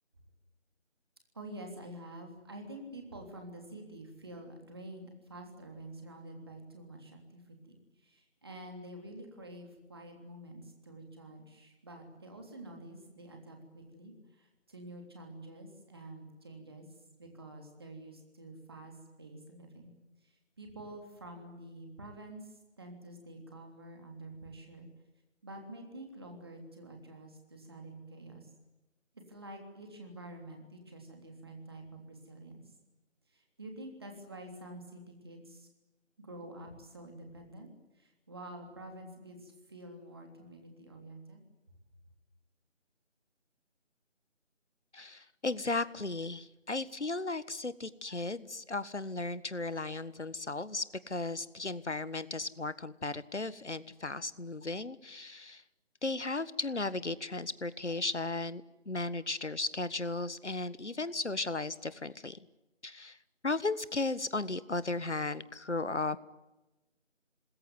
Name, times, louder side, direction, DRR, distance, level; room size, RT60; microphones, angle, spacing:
voice 1, 1.3-16.9 17.2-19.9 20.2-24.9 25.4-28.5 29.3-32.7 33.3-35.7 36.2-41.4, right 1 dB, 20° right, 3 dB, 3.2 m, -48 dB
voice 2, 44.9-55.6 56.0-62.4 62.8-63.2 63.4-66.2, left 3 dB, 65° left, 16 dB, 1.6 m, -35 dB
27.0 x 20.5 x 9.6 m, 1.1 s
figure-of-eight pair, 170°, 37 cm